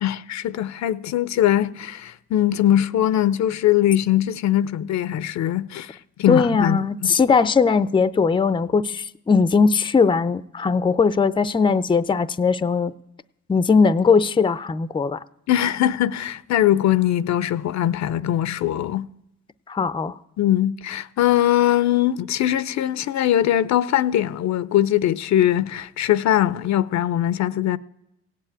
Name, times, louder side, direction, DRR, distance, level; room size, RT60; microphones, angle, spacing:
voice 1, 0.0-7.1 15.5-19.1 20.4-27.8, left 12 dB, 65° left, 0.6 m, -21 dB
voice 2, 6.3-12.9 13.5-15.2 19.7-20.2, left 5 dB, 15° left, 0.5 m, -19 dB
17.0 x 7.6 x 8.8 m
cardioid pair, 90°, 30 cm